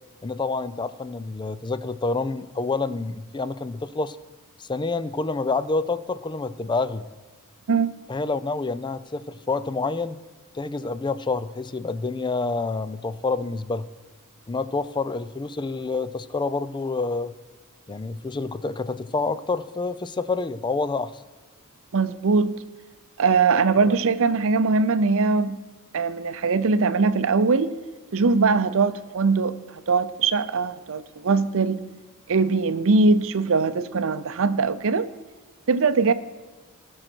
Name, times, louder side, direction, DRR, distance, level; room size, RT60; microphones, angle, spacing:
voice 1, 0.2-4.2 4.6-7.1 8.1-10.2 10.5-13.9 14.5-17.3 17.9-21.2 23.9-24.0, left 3 dB, 20° left, 14 dB, 0.4 m, -28 dB
voice 2, 21.9-22.6 23.2-25.6 25.9-27.7 28.1-31.8 32.3-35.1 35.7-36.1, right 4 dB, 65° right, 13 dB, 0.6 m, -21 dB
18.0 x 6.4 x 4.5 m, 1.4 s
head